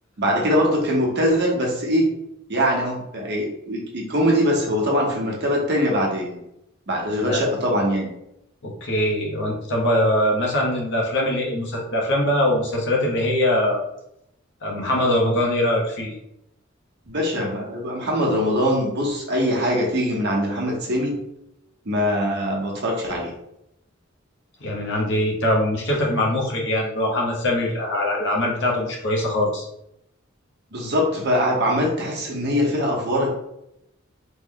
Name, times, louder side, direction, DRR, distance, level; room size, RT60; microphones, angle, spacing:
voice 1, 0.2-2.1 2.5-6.4 6.9-8.1 17.1-21.2 21.8-23.3 30.7-33.3, equal, 55° right, -1 dB, 0.9 m, -22 dB
voice 2, 8.6-13.8 14.6-16.1 24.6-29.7, left 1 dB, 60° left, -1 dB, 0.9 m, -22 dB
3.2 x 2.2 x 3.6 m, 0.79 s
head